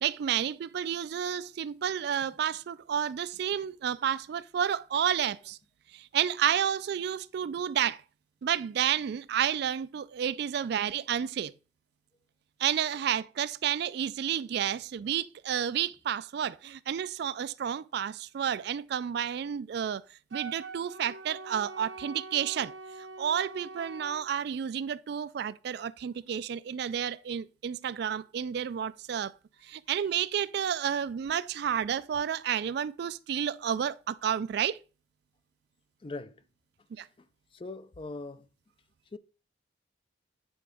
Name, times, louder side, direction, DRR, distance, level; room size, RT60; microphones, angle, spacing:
voice 1, 0.0-5.6 5.9-8.0 8.4-11.5 12.6-22.7 23.0-29.3 29.6-34.8 36.9-37.1, right 9 dB, 60° right, 0.3 m, -31 dB
Wind instrument woodwind instrument, 20.3-24.2, right 3 dB, 85° right, 1.2 m, -44 dB
voice 2, 36.0-36.4 37.5-38.5 39.1-39.2, left 3 dB, 30° left, 0.4 m, -40 dB
8.8 x 3.9 x 4.8 m
head